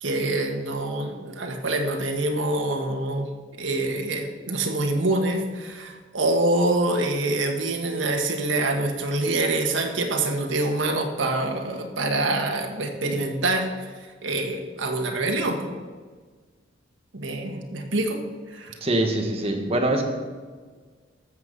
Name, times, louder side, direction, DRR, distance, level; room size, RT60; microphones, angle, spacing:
voice 1, 0.0-3.3 3.6-13.9 14.2-15.8 17.1-18.2 18.5-18.8, right 2 dB, 85° right, 3 dB, 1.5 m, -25 dB
voice 2, 18.8-20.0, right 1 dB, 30° right, 3 dB, 1.5 m, -23 dB
13.0 x 7.5 x 5.4 m, 1.5 s
head